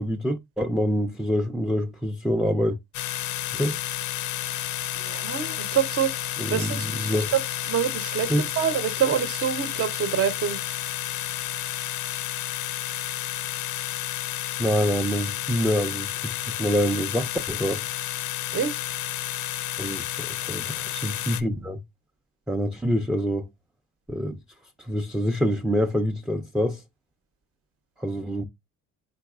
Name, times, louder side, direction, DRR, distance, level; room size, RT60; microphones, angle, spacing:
voice 1, 0.0-2.8 3.5-3.8 6.4-7.3 8.3-8.4 14.6-17.8 19.8-21.8 22.5-23.5 24.1-24.4 24.8-26.8 28.0-28.4, equal, ahead, 0.4 m, -26 dB
sound 1, 2.9-21.4, left 13 dB, 85° left, 0.5 m, -31 dB
voice 2, 5.0-7.4 7.7-10.6 18.5-18.8, right 9 dB, 50° right, 0.7 m, -26 dB
4.1 x 4.1 x 2.3 m
cardioid pair, 90°, 30 cm